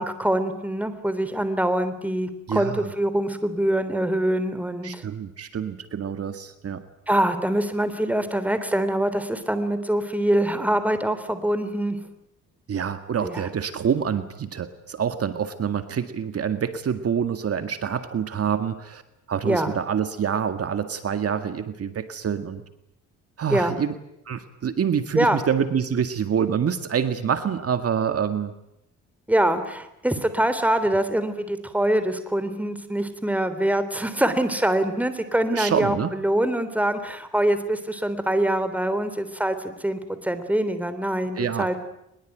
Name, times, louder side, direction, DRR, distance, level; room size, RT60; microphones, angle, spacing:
voice 1, 0.0-5.0 7.1-12.0 13.2-13.5 19.4-19.7 23.5-23.8 25.1-25.4 29.3-41.8, right 1 dB, 5° right, 11 dB, 3.4 m, -24 dB
voice 2, 2.5-2.8 4.8-6.8 12.7-19.0 19.3-22.6 23.4-23.9 24.3-28.5 35.5-36.1 41.4-41.8, right 7 dB, 50° right, 9 dB, 2.0 m, -26 dB
23.0 x 21.5 x 9.3 m, 0.83 s
cardioid pair, 90°, 30 cm